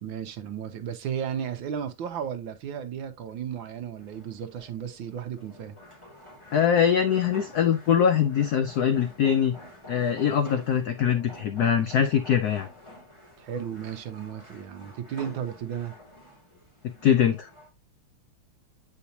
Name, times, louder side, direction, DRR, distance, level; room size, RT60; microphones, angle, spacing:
voice 1, 0.0-5.8 13.4-15.9, right 8 dB, 70° right, 1.4 m, -34 dB
sound 1, 4.0-17.7, left 1 dB, 15° left, 2.5 m, -49 dB
voice 2, 6.5-9.6 9.9-12.7 16.8-17.5, left 8 dB, 65° left, 1.0 m, -23 dB
8.2 x 5.1 x 2.8 m
omnidirectional pair, 2.3 m